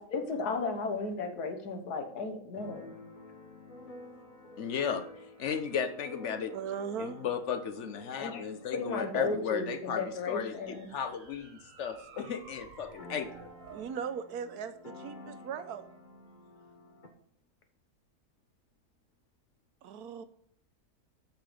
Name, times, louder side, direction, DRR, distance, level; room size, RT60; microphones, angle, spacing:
voice 1, 0.0-2.9 8.2-8.4 8.7-10.9 15.2-15.4, left 4 dB, 85° left, 6 dB, 1.7 m, -35 dB
Keyboard (musical), 2.5-12.1 12.4-12.5 12.7-17.1, left 2 dB, 35° left, 1.1 m, -52 dB
voice 2, 4.6-5.1 5.4-6.5 7.0-10.6 10.9-13.5, left 7 dB, 60° left, 10 dB, 0.9 m, -35 dB
voice 3, 6.5-7.2 10.9-11.0 13.7-15.9 19.8-20.2, right 7 dB, 80° right, 11 dB, 1.2 m, -38 dB
sound 1, 9.5-13.9, right 5 dB, 55° right, 1.6 m, -54 dB
8.2 x 6.0 x 5.0 m, 0.65 s
omnidirectional pair, 1.6 m